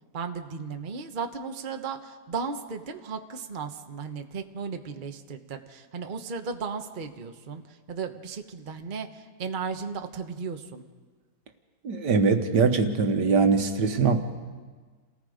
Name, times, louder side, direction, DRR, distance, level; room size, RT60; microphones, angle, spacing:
voice 1, 0.1-10.8, right 5 dB, 35° right, 6 dB, 1.1 m, -35 dB
voice 2, 11.8-14.2, right 4 dB, 80° right, 6 dB, 1.9 m, -22 dB
29.0 x 18.5 x 5.0 m, 1.4 s
omnidirectional pair, 1.8 m